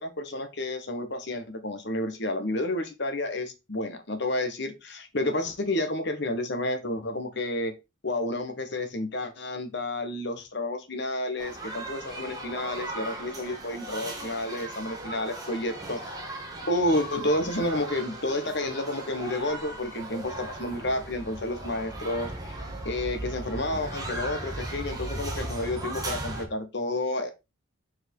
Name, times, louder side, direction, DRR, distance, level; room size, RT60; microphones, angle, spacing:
voice 1, 0.0-7.7 8.0-16.2 16.7-22.6 22.8-27.3, left 1 dB, 55° left, 7 dB, 1.5 m, -30 dB
sound 1, 11.4-26.5, right 1 dB, 20° right, 1.9 m, -37 dB
6.9 x 4.8 x 4.7 m, 0.25 s
head